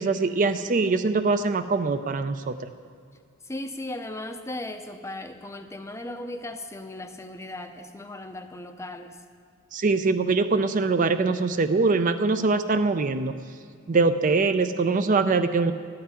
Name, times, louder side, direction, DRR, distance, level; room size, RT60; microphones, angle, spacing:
voice 1, 0.0-2.7 9.7-13.4 13.9-15.7, right 3 dB, 35° right, 10 dB, 0.4 m, -23 dB
voice 2, 3.5-9.2, left 1 dB, 15° left, 7 dB, 0.5 m, -37 dB
13.0 x 5.9 x 9.5 m, 2.2 s
head